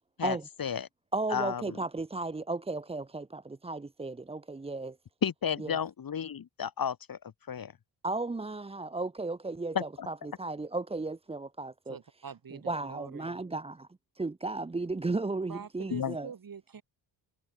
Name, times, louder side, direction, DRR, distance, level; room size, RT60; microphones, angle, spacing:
voice 1, 0.2-0.9 1.3-1.7 5.2-7.2 7.5-7.7 9.7-10.1 15.9-16.1, left 8 dB, 45° left, 1.5 m, -32 dB
voice 2, 1.1-5.0 5.6-5.7 8.0-12.0 12.7-13.9 14.1-16.3, right 3 dB, 15° right, 0.7 m, -35 dB
voice 3, 11.9-13.4 15.5-16.8, right 6 dB, 45° right, 3.3 m, -45 dB
cardioid pair, 90°, 48 cm